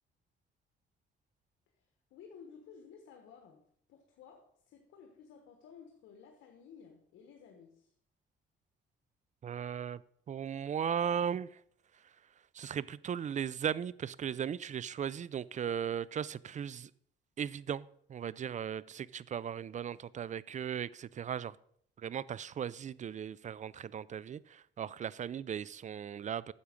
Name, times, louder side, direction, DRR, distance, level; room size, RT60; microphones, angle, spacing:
voice 1, 1.7-7.9, left 6 dB, 85° left, 1.3 m, -55 dB
voice 2, 9.4-10.0 10.3-11.6 12.5-16.9 17.4-21.6 22.0-26.5, right 8 dB, 40° right, 0.4 m, -37 dB
9.5 x 7.0 x 5.1 m
cardioid pair, 90°, 20 cm